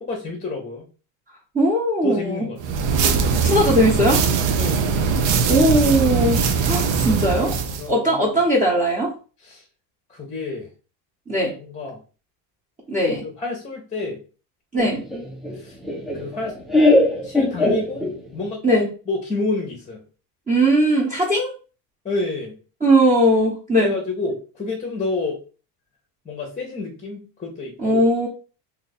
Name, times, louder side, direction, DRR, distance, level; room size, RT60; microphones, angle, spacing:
voice 1, 0.0-0.9 2.0-3.4 4.5-5.2 6.9-7.0 7.7-8.3 9.4-9.7 10.1-10.7 11.6-12.0 13.2-14.2 15.5-15.8 16.1-16.6 17.2-18.0 18.3-20.0 22.0-22.6 23.8-25.4 26.2-28.0, left 3 dB, 15° left, 1 dB, 0.9 m, -29 dB
voice 2, 1.5-2.5 3.4-4.2 5.5-7.6 7.9-9.1 11.3-11.5 12.9-13.2 14.7-15.0 18.6-18.8 20.5-21.5 22.8-23.9 27.8-28.3, right 1 dB, 15° right, -5 dB, 1.0 m, -19 dB
sound 1, 2.6-7.9, right 6 dB, 60° right, 0.8 m, -21 dB
Laughter, 14.8-18.4, left 1 dB, ahead, 0.3 m, -20 dB
2.8 x 2.5 x 4.1 m, 0.36 s
supercardioid pair, 120°, 50 cm